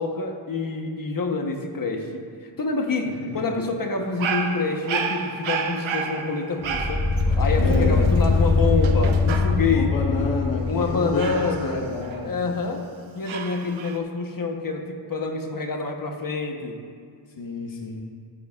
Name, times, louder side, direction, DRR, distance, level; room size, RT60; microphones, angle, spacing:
voice 1, 0.0-10.1 10.7-11.8 12.2-12.9 13.1-16.9, left 3 dB, 45° left, 3 dB, 1.1 m, -27 dB
Dog, 4.0-9.9 11.2-12.7 13.3-14.0, right 6 dB, 90° right, 0.8 m, -31 dB
sound 1, 6.6-11.9, left 4 dB, 15° left, 0.8 m, -22 dB
voice 2, 7.6-8.1 9.7-12.4 17.4-18.0, left 2 dB, 80° left, 0 dB, 1.2 m, -29 dB
14.0 x 9.8 x 2.4 m, 2.2 s
wide cardioid pair, 140°, 45 cm